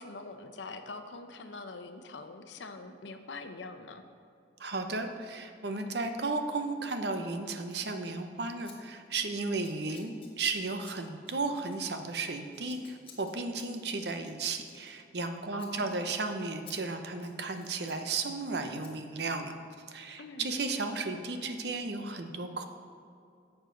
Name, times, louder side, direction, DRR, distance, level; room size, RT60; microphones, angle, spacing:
voice 1, 0.0-4.0 9.9-10.2 15.5-15.9 20.2-20.6, left 3 dB, 90° left, 7 dB, 0.7 m, -44 dB
voice 2, 4.6-19.5 19.9-22.7, right 3 dB, 65° right, 6 dB, 0.8 m, -34 dB
Scissors, 7.6-7.9 8.6-8.8 9.0-9.3 9.6-15.3 15.5-15.7 16.1-16.2 16.7-16.8 17.1-18.0 18.8-18.9, left 6 dB, 30° left, 1.2 m, -55 dB
11.5 x 7.2 x 3.9 m, 2.4 s
head